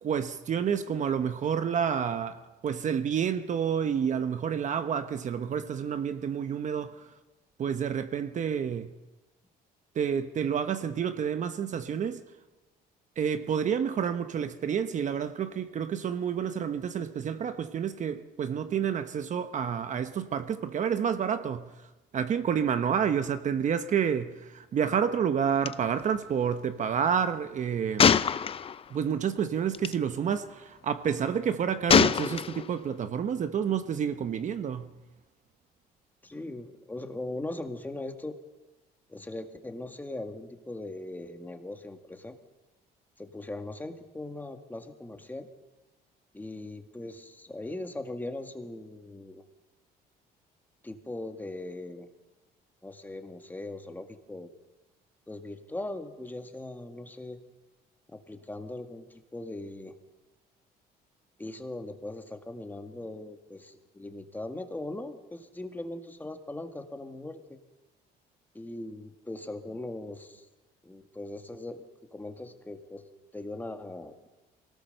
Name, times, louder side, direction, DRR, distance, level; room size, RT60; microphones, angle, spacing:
voice 1, 0.0-7.1 7.6-8.9 9.9-12.2 13.2-21.7 22.1-28.1 28.9-34.9, right 7 dB, 45° right, 1.0 m, -29 dB
Gunshot gunfire, 25.7-25.8 26.0-26.2 28.0-29.0 29.7-29.9 31.9-32.8, left 7 dB, 35° left, 0.6 m, -23 dB
voice 2, 36.2-38.4 39.1-42.4 43.2-45.5 46.3-49.4 50.8-52.1 52.8-54.5 55.3-57.4 58.1-59.9 61.4-67.6 68.5-70.5 70.8-71.8 72.1-73.0 73.3-74.1, left 2 dB, 10° left, 1.9 m, -40 dB
23.5 x 18.0 x 6.7 m
cardioid pair, 110°, 17 cm